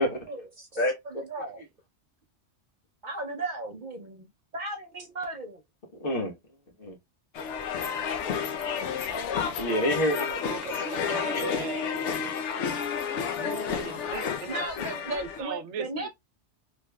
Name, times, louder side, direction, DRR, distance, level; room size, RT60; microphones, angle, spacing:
voice 1, 0.3-1.6 3.0-4.3 4.5-5.6 14.5-16.1, right 2 dB, 50° right, 0.7 m, -36 dB
voice 2, 6.0-6.3 6.8-7.0 9.5-10.6 11.3-11.4, equal, 55° left, 1.3 m, -27 dB
sound 1, 7.3-15.4, left 7 dB, 80° left, 0.9 m, -31 dB
voice 3, 10.1-12.6 13.4-14.6 15.1-16.1, right 6 dB, 85° right, 0.9 m, -38 dB
3.4 x 3.0 x 2.2 m
omnidirectional pair, 1.2 m